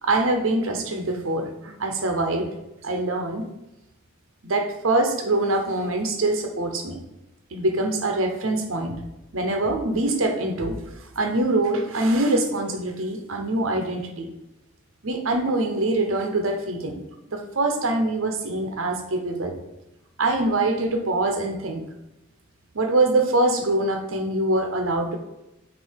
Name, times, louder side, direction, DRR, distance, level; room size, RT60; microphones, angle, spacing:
voice 1, 0.0-2.5 2.8-3.5 4.4-7.0 7.5-9.0 9.3-14.3 15.0-17.0 17.3-19.5 20.2-21.8 22.7-25.2, right 2 dB, 75° right, 4 dB, 0.9 m, -24 dB
8.2 x 2.8 x 4.5 m, 0.93 s
head